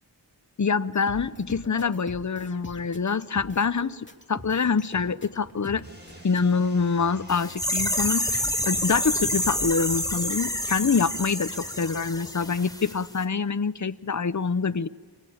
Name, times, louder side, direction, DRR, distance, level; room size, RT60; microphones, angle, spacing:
voice 1, 0.6-5.8 6.2-14.9, left 5 dB, 45° left, 14 dB, 0.8 m, -25 dB
sound 1, 0.9-6.4, left 1 dB, 25° left, 2.8 m, -43 dB
sound 2, 5.8-13.4, right 1 dB, 25° right, 7.8 m, -49 dB
sound 3, 7.3-12.9 13.2-13.3, equal, 10° left, 3.2 m, -28 dB
25.0 x 24.0 x 8.7 m, 1.3 s
wide cardioid pair, 50°, 42 cm